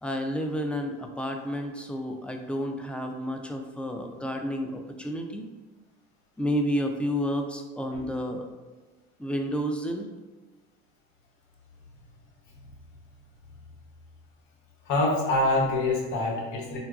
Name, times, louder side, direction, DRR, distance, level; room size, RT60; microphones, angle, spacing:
voice 1, 0.0-5.4 6.4-8.5 9.2-10.1, equal, 5° left, 4 dB, 0.3 m, -30 dB
voice 2, 14.8-16.8, left 2 dB, 70° left, -2 dB, 0.9 m, -25 dB
3.8 x 2.2 x 2.4 m, 1.3 s
supercardioid pair, 80°, 30 cm